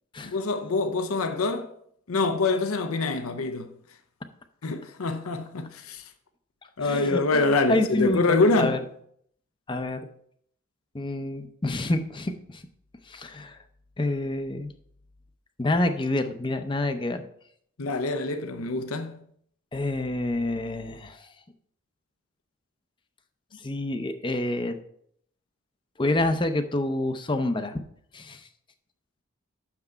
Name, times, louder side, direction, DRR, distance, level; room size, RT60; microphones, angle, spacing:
voice 1, 0.2-1.7 2.1-3.7 4.6-6.0 6.8-8.8 17.8-19.2, left 3 dB, 90° left, 0.7 m, -25 dB
voice 2, 6.8-8.8 9.7-10.0 10.9-12.6 13.1-13.6 14.0-14.7 15.6-17.3 19.7-21.3 23.6-24.8 26.0-27.8 28.1-28.5, left 2 dB, 20° left, 0.5 m, -28 dB
6.6 x 5.9 x 4.4 m
head